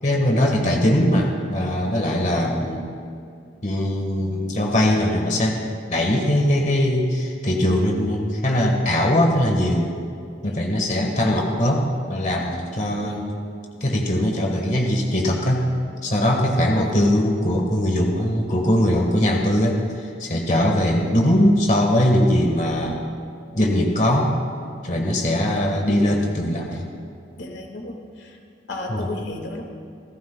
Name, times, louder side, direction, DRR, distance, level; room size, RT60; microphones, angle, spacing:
voice 1, 0.0-2.9 3.6-5.6 5.9-9.9 10.4-13.3 13.8-15.7 16.0-23.0 23.5-24.3 24.8-26.9 28.9-29.1, left 1 dB, 40° left, 1 dB, 1.4 m, -21 dB
voice 2, 27.4-28.4 28.7-29.6, left 1 dB, 80° left, 2 dB, 1.7 m, -34 dB
28.0 x 14.0 x 2.2 m, 2.4 s
head